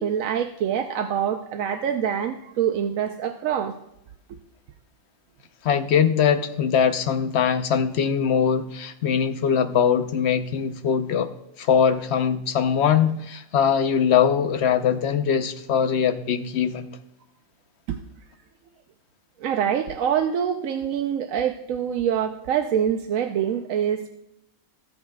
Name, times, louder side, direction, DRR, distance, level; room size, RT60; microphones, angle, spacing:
voice 1, 0.0-3.7 17.9-18.0 19.4-24.1, right 8 dB, 90° right, 6 dB, 1.1 m, -25 dB
voice 2, 5.6-11.3 11.6-16.9, left 7 dB, 60° left, 9 dB, 0.9 m, -22 dB
18.0 x 8.7 x 2.3 m, 0.83 s
omnidirectional pair, 1.4 m